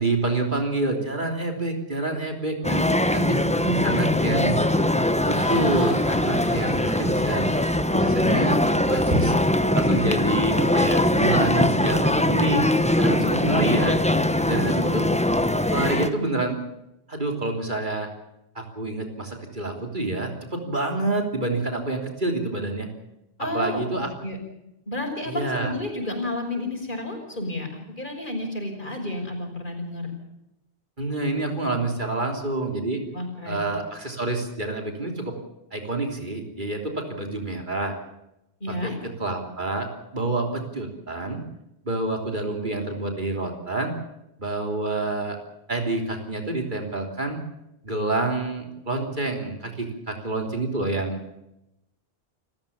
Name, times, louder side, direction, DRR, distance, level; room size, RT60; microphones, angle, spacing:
voice 1, 0.0-2.8 3.1-3.4 3.8-4.6 5.3-7.5 7.9-12.6 13.0-14.0 14.5-15.0 15.7-16.6 17.1-18.1 18.6-22.9 23.5-24.1 25.3-25.7 31.0-33.0 33.5-35.3 35.7-38.0 38.8-39.9 40.1-41.4 41.9-43.9 44.4-45.4 45.7-47.4 47.8-51.3, right 2 dB, 50° right, 3 dB, 3.5 m, -27 dB
voice 2, 2.6-4.3 14.4-14.5 15.6-15.9 23.4-23.8 24.2-24.4 24.9-30.1 33.1-33.6 38.6-38.9, left 1 dB, 50° left, 3 dB, 5.8 m, -31 dB
sound 1, 2.6-16.1, left 1 dB, 5° left, 1.1 m, -22 dB
sound 2, 5.0-9.2, left 2 dB, 85° left, 3.3 m, -42 dB
29.0 x 14.5 x 7.1 m, 0.88 s
omnidirectional pair, 1.1 m